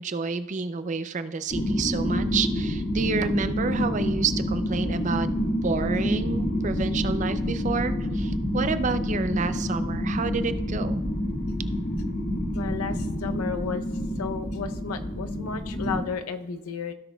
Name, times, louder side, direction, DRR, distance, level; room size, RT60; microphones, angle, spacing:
voice 1, 0.0-5.3 5.6-11.0, right 4 dB, 35° right, 11 dB, 0.4 m, -29 dB
sound 1, 1.5-16.0, equal, 35° left, 1.2 m, -28 dB
voice 2, 12.5-13.8 14.2-16.9, left 5 dB, 90° left, 9 dB, 0.6 m, -33 dB
16.0 x 6.2 x 2.3 m, 0.98 s
head